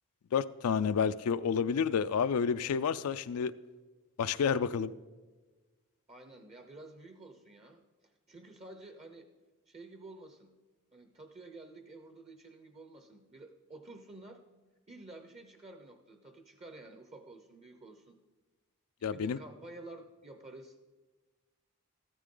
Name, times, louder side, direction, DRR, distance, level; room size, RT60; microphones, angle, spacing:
voice 1, 0.3-3.5 4.2-4.9 19.0-19.4, left 6 dB, 75° left, 12 dB, 0.4 m, -30 dB
voice 2, 6.1-9.3 9.7-10.5 10.9-14.4 14.9-18.2 19.1-20.8, right 2 dB, 30° right, 6 dB, 0.7 m, -51 dB
14.0 x 13.0 x 3.8 m, 1.3 s
head